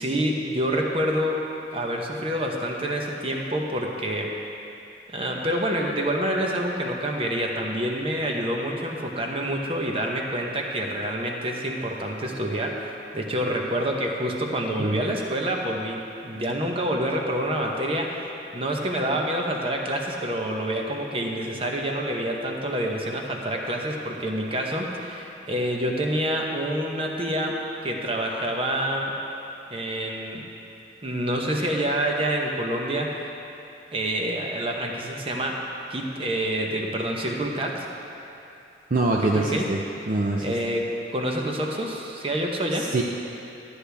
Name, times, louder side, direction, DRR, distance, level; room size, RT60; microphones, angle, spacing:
voice 1, 0.0-1.4 1.7-4.3 5.1-29.1 29.7-30.5 31.0-33.2 33.9-37.9 39.2-39.7 40.4-42.9, right 1 dB, 30° right, 0 dB, 1.0 m, -27 dB
voice 2, 38.9-39.8 40.1-40.5 42.7-43.0, right 2 dB, 50° right, -1 dB, 0.6 m, -24 dB
13.5 x 9.8 x 3.5 m, 2.8 s
head